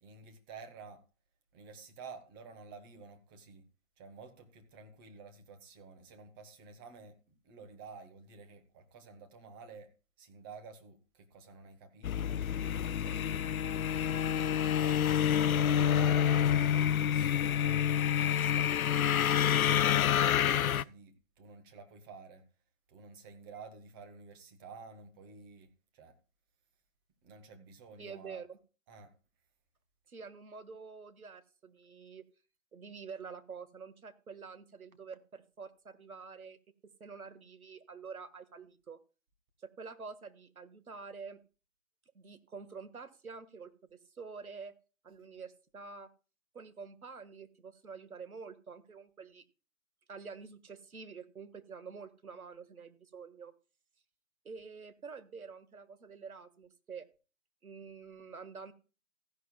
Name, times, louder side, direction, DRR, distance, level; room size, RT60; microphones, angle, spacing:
voice 1, 0.0-1.0 1.5-3.7 4.0-9.9 10.2-12.4 13.0-13.4 14.3-17.8 18.2-22.4 22.9-26.2 27.2-28.4 28.9-29.1 45.2-45.3, right 4 dB, 15° right, 6 dB, 1.3 m, -52 dB
sound 1, 12.0-20.8, left 9 dB, 75° left, 0.5 m, -28 dB
voice 2, 28.0-28.6 30.1-32.3 32.7-36.6 37.0-39.0 39.6-41.4 42.2-44.7 45.0-46.1 46.5-49.4 50.1-53.5 54.5-57.1 57.6-58.7, right 5 dB, 80° right, 11 dB, 1.7 m, -47 dB
15.0 x 11.0 x 2.3 m, 0.34 s
figure-of-eight pair, 150°, 43 cm